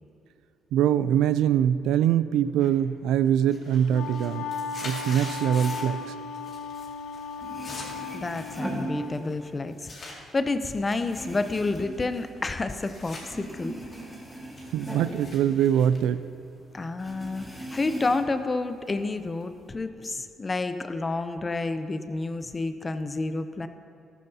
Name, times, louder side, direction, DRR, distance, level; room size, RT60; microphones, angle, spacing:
voice 1, 0.7-4.5 4.8-6.1 14.7-16.3, right 10 dB, 90° right, 14 dB, 0.3 m, -23 dB
sound 1, 2.6-3.0 3.3-6.0 6.3-6.9 7.1-10.2 10.7-13.3 13.6-16.8, left 2 dB, 40° left, 2.2 m, -44 dB
Wind instrument woodwind instrument, 3.7-9.1, left 5 dB, 80° left, 0.6 m, -36 dB
sound 2, 7.1-7.2 7.4-9.6 9.9-12.9 13.2-16.2 16.4-16.5 17.0-18.5 18.9-19.6, right 1 dB, ahead, 1.7 m, -39 dB
voice 2, 8.1-13.7 16.7-23.7, left 3 dB, 25° left, 10 dB, 0.5 m, -30 dB
13.5 x 13.0 x 2.8 m, 2.5 s
cardioid pair, 125°, 0 cm